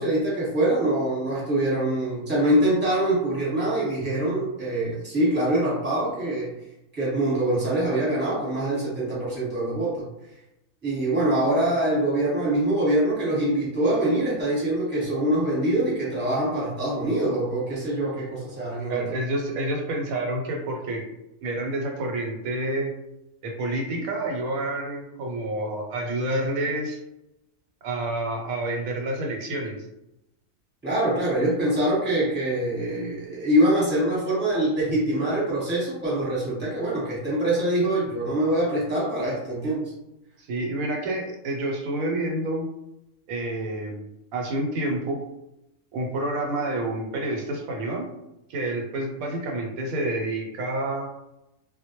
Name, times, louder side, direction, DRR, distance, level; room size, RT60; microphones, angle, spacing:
voice 1, 0.0-6.5 6.9-10.0 10.8-19.0 30.8-39.9, right 1 dB, 10° right, -7 dB, 0.9 m, -24 dB
voice 2, 18.9-21.0 21.4-22.9 23.4-27.0 27.8-29.8 40.4-42.7 43.3-44.0 44.3-45.2 45.9-48.1 48.5-51.1, right 1 dB, 85° right, 1 dB, 1.0 m, -28 dB
2.1 x 2.1 x 2.8 m, 0.88 s
omnidirectional pair, 1.4 m